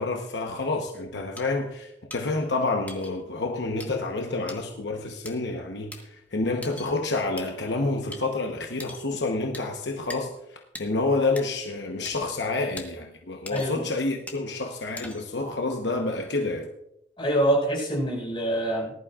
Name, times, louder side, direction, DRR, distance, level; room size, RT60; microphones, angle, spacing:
voice 1, 0.0-10.4 10.8-16.7, left 3 dB, 75° left, 1.0 m, -28 dB
sound 1, 1.4-1.5 2.1-2.2 2.9-3.1 3.8-3.9 4.5-4.6 5.2-5.3 5.9-6.0 6.6-6.9 7.4-7.5 8.1-8.2 8.8-9.1 9.5-9.7 10.1-10.2 10.7-10.9 11.4-11.5 12.0-12.1 12.8-12.9 13.4-13.8 14.3-14.4 15.0-15.4, left 2 dB, 10° left, 1.3 m, -40 dB
voice 2, 17.2-18.9, right 1 dB, 30° left, 5.3 m, -25 dB
19.0 x 11.5 x 2.4 m
head